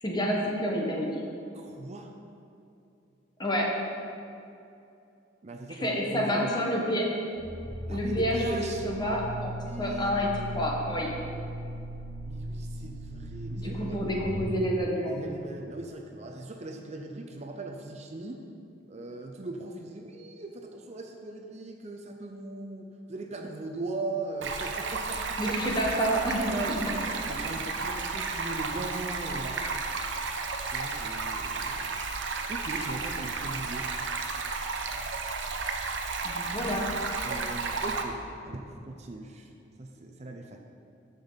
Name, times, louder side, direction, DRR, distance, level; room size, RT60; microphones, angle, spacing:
voice 1, 0.0-1.1 3.4-3.7 5.8-7.1 7.9-9.5 9.8-10.3 10.5-11.1 13.6-15.2 25.4-26.8 36.2-36.9, equal, 25° left, -1 dB, 1.2 m, -28 dB
voice 2, 1.5-2.1 5.4-6.5 7.9-8.9 9.7-10.8 12.2-14.0 15.0-18.4 18.9-25.7 26.5-29.8 30.7-31.9 32.5-33.9 37.2-38.2 38.4-39.5 39.8-40.6, right 2 dB, 35° right, 3 dB, 0.6 m, -39 dB
sound 1, 7.3-14.4, right 1 dB, 5° right, 2.3 m, -38 dB
Stream, 24.4-38.0, right 4 dB, 85° right, 0.7 m, -33 dB
13.5 x 5.3 x 4.0 m, 2.6 s
head